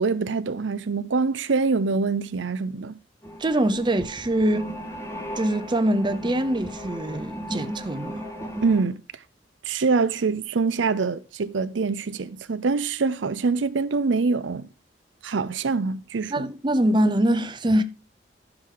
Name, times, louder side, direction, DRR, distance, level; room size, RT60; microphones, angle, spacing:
voice 1, 0.0-3.0 8.6-9.0 9.6-14.7 15.2-16.5, right 4 dB, 80° right, 0.6 m, -24 dB
sound 1, 3.2-8.8, equal, 15° left, 1.6 m, -36 dB
voice 2, 3.4-4.7 5.3-8.3 16.3-17.8, right 1 dB, 25° right, 0.7 m, -23 dB
11.5 x 6.1 x 3.8 m
head